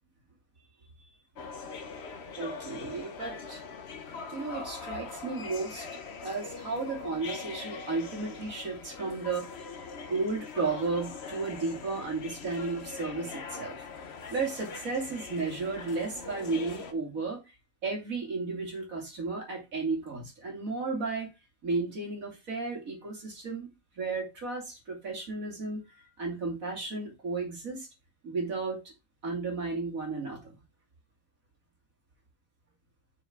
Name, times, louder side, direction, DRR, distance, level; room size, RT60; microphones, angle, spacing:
sound 1, 1.4-16.9, left 5 dB, 50° left, 1.1 m, -42 dB
voice 1, 2.4-3.6 4.3-5.9 6.2-9.5 10.1-13.8 14.3-17.4 17.8-21.3 21.6-23.7 24.0-27.9 28.2-28.9 29.2-30.6, right 3 dB, 75° right, 3.1 m, -33 dB
7.0 x 6.4 x 3.7 m
omnidirectional pair, 1.5 m